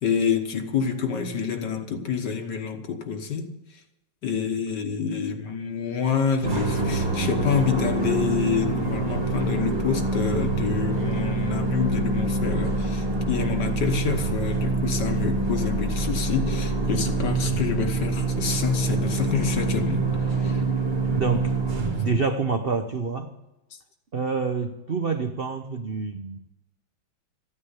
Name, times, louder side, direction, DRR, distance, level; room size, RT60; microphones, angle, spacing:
voice 1, 0.0-3.5 4.2-20.1 20.4-20.6, left 6 dB, 60° left, 1.9 m, -27 dB
sound 1, 6.4-22.2, right 3 dB, 30° right, 1.1 m, -26 dB
voice 2, 21.0-23.4 24.1-26.4, right 4 dB, 55° right, 0.6 m, -27 dB
14.5 x 9.6 x 8.3 m
omnidirectional pair, 2.2 m